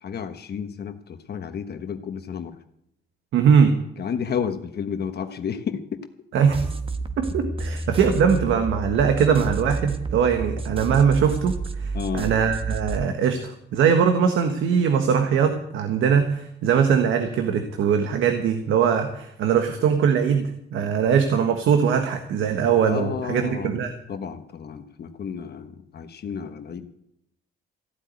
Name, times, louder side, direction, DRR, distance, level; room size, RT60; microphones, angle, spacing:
voice 1, 0.0-2.6 4.0-6.1 11.9-12.3 22.9-23.8 24.1-26.9, left 7 dB, 55° left, 7 dB, 1.3 m, -31 dB
voice 2, 3.3-3.7 6.3-6.6 7.2-23.9, right 7 dB, 80° right, 6 dB, 1.6 m, -21 dB
sound 1, 6.5-13.0, right 3 dB, 30° right, 1.3 m, -30 dB
15.5 x 8.2 x 9.5 m, 0.77 s
cardioid pair, 90°, 20 cm